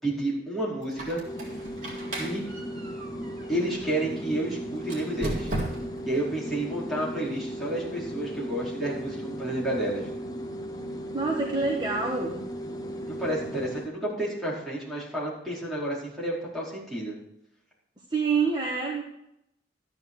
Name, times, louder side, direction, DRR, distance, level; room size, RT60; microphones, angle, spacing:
voice 1, 0.0-1.2 2.2-2.4 3.5-5.5 6.0-10.1 13.1-17.1, right 1 dB, ahead, -7 dB, 4.9 m, -30 dB
Squeak, 0.8-4.0 4.8-6.1, right 1 dB, 45° right, 3.7 m, -36 dB
sound 1, 1.2-13.9, equal, 20° left, 1.1 m, -36 dB
voice 2, 11.1-12.4 18.1-19.0, right 4 dB, 25° right, -1 dB, 1.5 m, -26 dB
12.5 x 9.9 x 4.6 m, 0.80 s
head